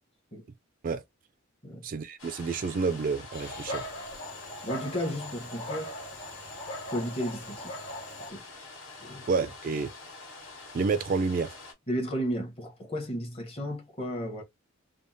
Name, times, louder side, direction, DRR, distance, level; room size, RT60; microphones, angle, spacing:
voice 1, 1.8-3.9 9.3-9.9 10.7-11.5, right 4 dB, 45° right, 0.3 m, -29 dB
sound 1, 2.2-11.7, left 3 dB, 90° left, 1.4 m, -46 dB
Dog, 3.3-8.3, left 1 dB, 60° left, 1.3 m, -40 dB
voice 2, 4.6-5.9 6.9-7.7 8.3-8.4 9.0-9.3 11.9-14.4, equal, 30° left, 0.8 m, -33 dB
3.4 x 2.0 x 2.6 m
head